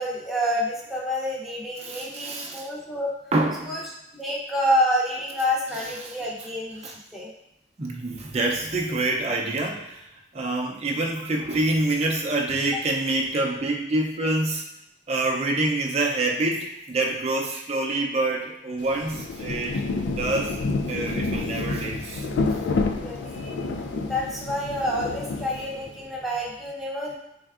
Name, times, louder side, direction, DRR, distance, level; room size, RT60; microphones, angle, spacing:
voice 1, 0.0-3.1 3.7-3.8 4.1-7.3 23.0-23.5 24.0-27.1, equal, ahead, -6 dB, 0.7 m, -28 dB
voice 2, 1.8-2.7 3.3-3.8 5.7-6.1 6.8-7.0 7.8-10.1 10.3-14.6 15.1-19.8 20.2-20.6 20.9-22.3, right 2 dB, 35° right, 0 dB, 0.5 m, -26 dB
Rain, 18.8-26.0, left 3 dB, 90° left, 0.4 m, -29 dB
3.8 x 3.4 x 2.4 m, 0.84 s
head